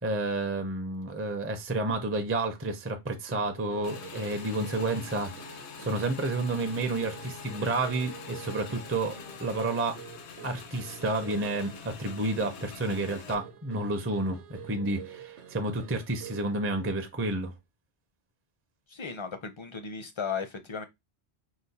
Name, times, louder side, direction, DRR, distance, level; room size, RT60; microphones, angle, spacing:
voice 1, 0.0-10.0 10.4-17.5, right 2 dB, 20° right, 0.4 m, -30 dB
sound 1, 3.3-16.6, right 7 dB, 85° right, 1.1 m, -48 dB
Motorcycle / Engine, 3.8-13.3, left 5 dB, 75° left, 1.0 m, -45 dB
voice 2, 18.9-20.8, left 6 dB, 35° left, 0.5 m, -35 dB
4.9 x 2.1 x 4.1 m
omnidirectional pair, 1.2 m